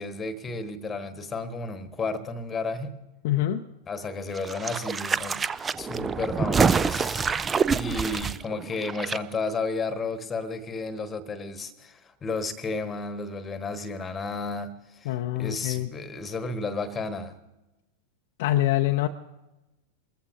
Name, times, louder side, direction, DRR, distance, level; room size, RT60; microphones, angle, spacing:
voice 1, 0.0-3.0 3.9-5.4 5.7-17.3, left 3 dB, 20° left, 11 dB, 1.2 m, -33 dB
voice 2, 3.2-3.6 15.1-15.9 18.4-19.1, left 14 dB, 50° left, 6 dB, 0.6 m, -25 dB
sound 1, 4.3-9.2 9.5-9.6, right 5 dB, 15° right, 0.4 m, -26 dB
23.0 x 14.5 x 2.6 m, 0.99 s
figure-of-eight pair, 90°, 0 cm